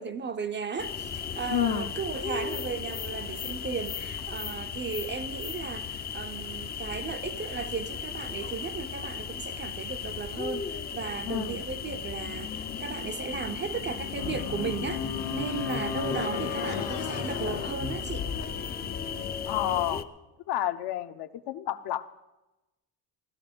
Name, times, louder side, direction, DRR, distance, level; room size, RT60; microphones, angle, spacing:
voice 1, 0.0-18.3, right 5 dB, 25° right, 0.5 m, -35 dB
sound 1, 0.8-20.0, left 7 dB, 25° left, 0.5 m, -36 dB
voice 2, 1.5-1.9 11.2-11.6 19.5-20.0 20.5-22.1, left 13 dB, 65° left, 0.9 m, -30 dB
sound 2, 14.2-19.8, left 6 dB, 85° left, 1.4 m, -34 dB
16.5 x 12.5 x 5.1 m
cardioid pair, 145°, 42 cm